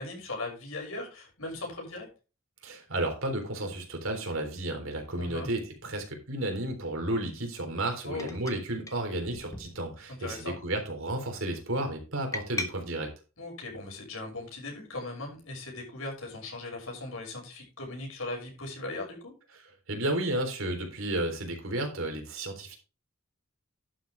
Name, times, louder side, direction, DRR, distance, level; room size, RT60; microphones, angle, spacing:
voice 1, 0.0-2.1 5.2-5.5 8.0-8.3 10.1-10.6 13.4-19.3, left 2 dB, 80° left, 1 dB, 6.4 m, -38 dB
voice 2, 2.6-13.1 19.9-22.7, right 1 dB, 70° right, 4 dB, 3.8 m, -32 dB
sound 1, 5.2-5.3 6.9-7.1 8.2-8.6 8.9-9.0 9.3-10.2 10.5-10.9 12.3-12.7, left 2 dB, 15° left, 1.2 m, -39 dB
11.5 x 7.9 x 3.5 m, 0.31 s
head